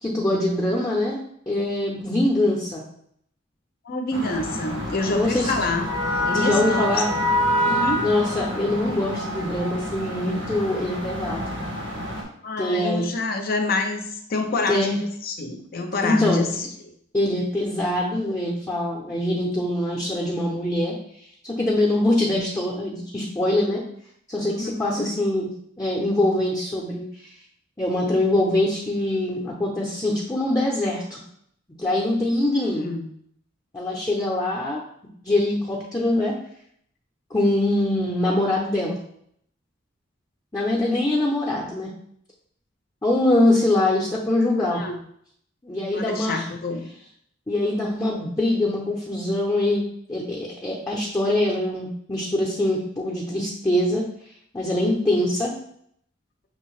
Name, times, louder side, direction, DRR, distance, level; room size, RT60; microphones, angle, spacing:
voice 1, 0.0-1.2 1.5-2.8 5.1-5.5 6.3-7.1 8.0-11.4 12.6-13.1 14.7-15.0 16.0-16.7 17.1-20.9 21.4-23.8 24.3-25.5 25.8-27.0 27.8-31.2 31.8-32.9 33.7-34.8 35.2-36.3 37.3-39.0 40.5-41.9 43.0-44.8 45.6-46.4 47.5-49.8 50.1-54.0 54.5-55.5, left 1 dB, 20° left, -6 dB, 0.7 m, -23 dB
voice 2, 3.8-5.9 6.3-6.9 7.6-8.0 12.4-16.9 24.5-25.0 32.4-33.1 44.7-45.0 45.9-46.9, left 3 dB, 50° left, 5 dB, 0.6 m, -27 dB
sound 1, 4.1-12.2, left 1 dB, 90° right, 1.3 m, -27 dB
6.0 x 2.8 x 3.1 m, 0.68 s
head